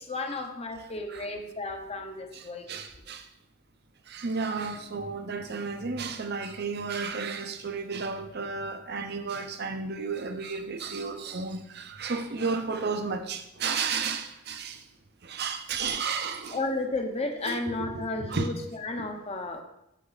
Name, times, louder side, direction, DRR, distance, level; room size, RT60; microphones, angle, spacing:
voice 1, 0.0-2.7 16.5-19.6, left 2 dB, 30° left, 5 dB, 0.9 m, -33 dB
voice 2, 2.3-3.3 4.1-14.8 15.2-16.6 17.4-18.5, right 4 dB, 50° right, 8 dB, 0.8 m, -33 dB
8.3 x 6.9 x 4.1 m, 0.83 s
head